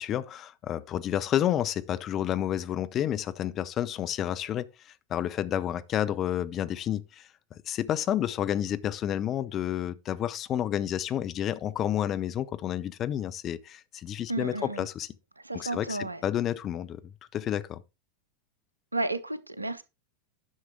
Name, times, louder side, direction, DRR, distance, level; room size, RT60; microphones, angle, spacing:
voice 1, 0.0-7.3 7.7-15.1 15.5-17.0 17.3-17.8, left 11 dB, 30° left, 0.7 m, -30 dB
voice 2, 14.3-14.9 15.4-16.2 18.9-19.8, right 2 dB, 85° right, 0.8 m, -32 dB
10.5 x 6.4 x 3.6 m
figure-of-eight pair, 90°, 0 cm